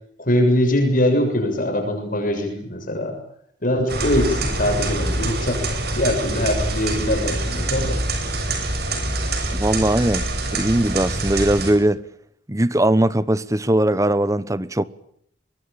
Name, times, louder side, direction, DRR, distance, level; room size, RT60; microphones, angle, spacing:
voice 1, 0.2-3.2 3.6-5.6 6.0-8.0, left 1 dB, 50° left, 7.1 m, -22 dB
sound 1, 3.9-11.7, right 2 dB, 60° right, 6.8 m, -25 dB
voice 2, 9.5-10.3 10.5-12.0 12.5-14.8, right 1 dB, 20° right, 1.0 m, -19 dB
23.5 x 22.5 x 9.0 m
head